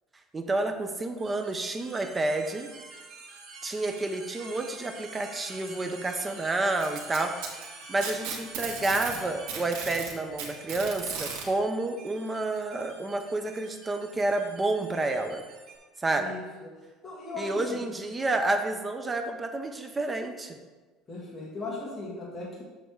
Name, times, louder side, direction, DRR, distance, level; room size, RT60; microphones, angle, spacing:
voice 1, 0.3-2.7 3.6-7.5 7.9-15.4 16.0-16.3 17.3-20.6, right 2 dB, 15° right, 6 dB, 0.6 m, -30 dB
crazy sampling audiopaint, 1.2-15.8, right 4 dB, 45° right, 1.5 m, -47 dB
Packing tape duct tape, 6.8-9.2 9.5-11.4 12.6-12.7 13.2-13.3 14.1-14.2, right 6 dB, 90° right, 1.7 m, -36 dB
voice 2, 16.2-16.7 17.0-17.8 21.1-22.6, left 3 dB, 20° left, -6 dB, 2.0 m, -38 dB
7.8 x 3.4 x 6.3 m, 1.3 s
cardioid pair, 165°, 0 cm